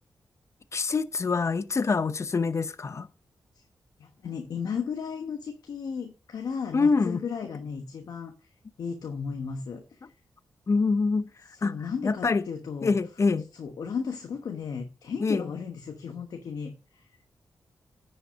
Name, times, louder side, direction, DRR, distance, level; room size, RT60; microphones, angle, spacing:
voice 1, 0.7-3.1 6.7-7.2 10.7-11.2 11.6-12.4 12.8-13.4 15.2-15.5, left 4 dB, 45° left, 0.8 m, -25 dB
voice 2, 4.0-8.5 8.8-10.0 11.5-13.0 13.6-17.1, left 6 dB, 75° left, 1.1 m, -35 dB
10.0 x 5.6 x 5.1 m
cardioid pair, 60°, 7 cm